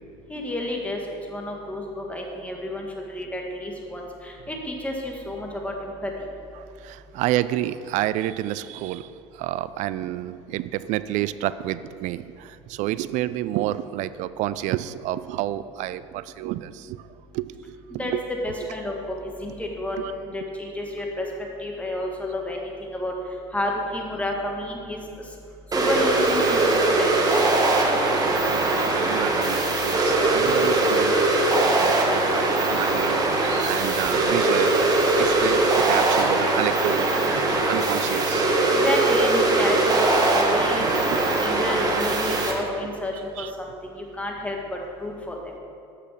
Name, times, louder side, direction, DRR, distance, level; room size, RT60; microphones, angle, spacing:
voice 1, 0.3-6.1 18.0-19.0 19.2-21.2 21.6-23.1 23.5-25.0 25.7-27.1 38.7-41.1 41.4-44.6 45.0-45.4, left 1 dB, 10° left, 0 dB, 1.9 m, -30 dB
voice 2, 6.8-9.1 9.3-17.0 17.3-18.2 20.0-20.1 28.5-38.5 40.8-41.4 43.4-43.5, right 14 dB, 60° right, 15 dB, 0.4 m, -30 dB
sound 1, 25.7-42.5, right 2 dB, 25° right, 1.6 m, -21 dB
7.7 x 6.6 x 6.1 m, 2.5 s
hypercardioid pair, 85°, 14 cm